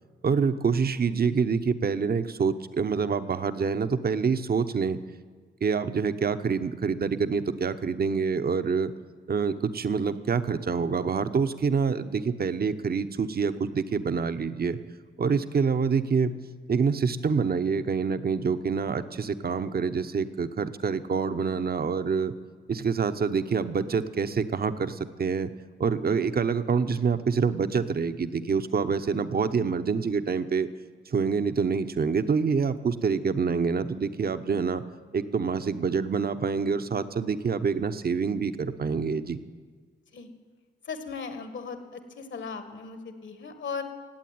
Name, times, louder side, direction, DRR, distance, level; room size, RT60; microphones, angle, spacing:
voice 1, 0.2-5.0 5.6-8.9 9.3-14.8 15.2-16.3 16.7-22.3 22.7-25.5 25.8-30.7 31.1-34.8 35.1-39.4, right 5 dB, 50° right, 11 dB, 0.9 m, -26 dB
voice 2, 40.9-43.8, left 5 dB, 65° left, 8 dB, 1.8 m, -37 dB
16.5 x 8.6 x 9.5 m, 1.5 s
cardioid pair, 50°, 20 cm